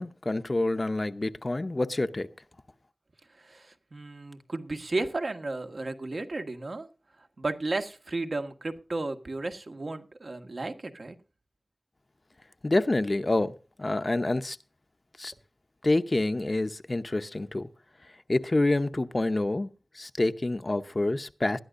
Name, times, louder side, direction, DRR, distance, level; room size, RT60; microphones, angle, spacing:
voice 1, 0.0-2.3 12.6-13.5 13.8-14.6 15.2-15.3 15.8-17.7 18.3-19.7 20.0-21.6, left 2 dB, 45° left, 0.8 m, -27 dB
voice 2, 3.3-6.9 7.2-11.2, right 2 dB, 70° right, 1.6 m, -34 dB
20.0 x 12.5 x 2.6 m
wide cardioid pair, 55°, 0 cm